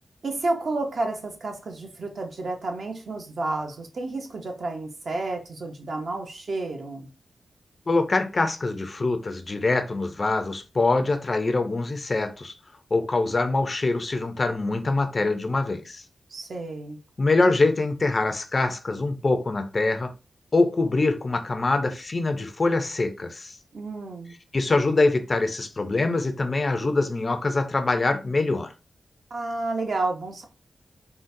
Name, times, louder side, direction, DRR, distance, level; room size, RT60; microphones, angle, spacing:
voice 1, 0.2-7.1 16.3-17.0 23.7-24.3 29.3-30.5, right 2 dB, 55° right, 0.6 m, -31 dB
voice 2, 7.9-12.5 12.9-16.0 17.2-20.1 20.5-23.6 24.5-28.7, left 3 dB, 30° left, 0.4 m, -24 dB
3.8 x 2.0 x 2.5 m
wide cardioid pair, 160°, 0 cm